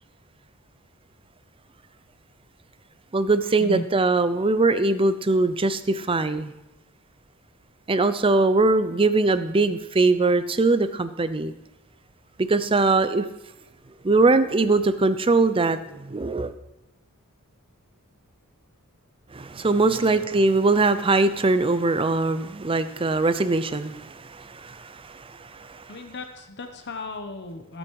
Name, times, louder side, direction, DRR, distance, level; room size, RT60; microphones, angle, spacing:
voice 1, 3.1-6.5 7.9-11.5 12.4-13.3 14.0-16.5 19.3-26.0, right 3 dB, 25° right, 12 dB, 0.6 m, -22 dB
voice 2, 19.9-20.3 25.9-27.8, left 1 dB, 50° left, 6 dB, 1.0 m, -36 dB
15.5 x 7.9 x 4.7 m, 0.91 s
head